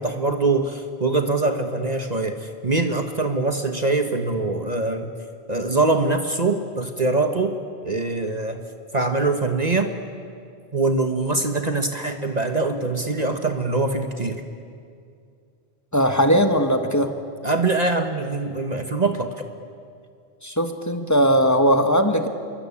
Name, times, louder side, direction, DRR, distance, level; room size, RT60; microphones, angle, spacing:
voice 1, 0.0-5.1 5.5-7.6 7.8-8.6 8.9-9.9 10.7-14.4 17.4-19.3, right 3 dB, 40° right, 6 dB, 1.4 m, -23 dB
voice 2, 15.9-17.1 20.4-22.3, equal, 15° left, 6 dB, 1.6 m, -19 dB
27.0 x 23.0 x 8.6 m, 2.3 s
omnidirectional pair, 1.1 m